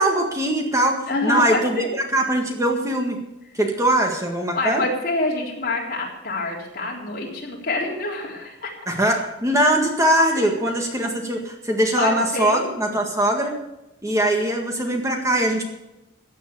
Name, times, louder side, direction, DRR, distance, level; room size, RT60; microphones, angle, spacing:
voice 1, 0.0-3.2 3.5-4.8 8.9-13.6 14.0-15.7, right 1 dB, 15° right, 2 dB, 1.7 m, -21 dB
voice 2, 1.1-1.9 4.5-8.7 10.4-10.5 12.0-12.7, left 2 dB, 50° left, -2 dB, 4.0 m, -26 dB
15.0 x 9.4 x 7.0 m, 0.94 s
head